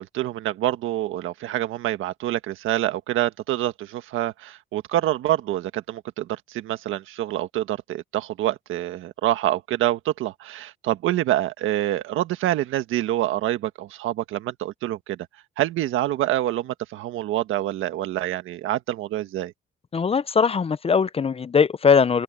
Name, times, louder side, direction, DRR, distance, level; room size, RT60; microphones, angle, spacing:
voice 1, 0.0-15.2 15.6-19.5, right 14 dB, 90° right, 1.5 m, -26 dB
voice 2, 19.9-22.2, left 6 dB, 30° left, 0.6 m, -20 dB
open air
cardioid pair, 90°, 20 cm